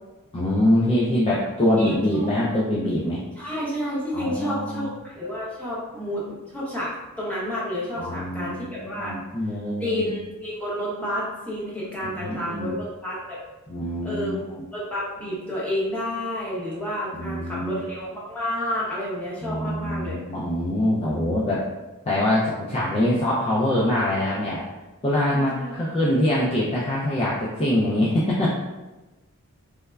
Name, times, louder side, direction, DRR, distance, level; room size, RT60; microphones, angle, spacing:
voice 1, 0.3-3.2 4.1-4.9 8.0-8.7 9.0-10.2 12.0-12.8 13.7-14.4 17.1-17.8 19.4-21.7 22.1-24.6 25.0-28.6, left 1 dB, 25° left, -6 dB, 0.3 m, -24 dB
voice 2, 1.8-2.3 3.4-6.2 6.5-9.2 9.8-13.4 14.0-14.4 14.7-20.2 25.3-25.7, equal, 5° left, -8 dB, 0.7 m, -30 dB
3.2 x 2.0 x 2.2 m, 1.1 s
head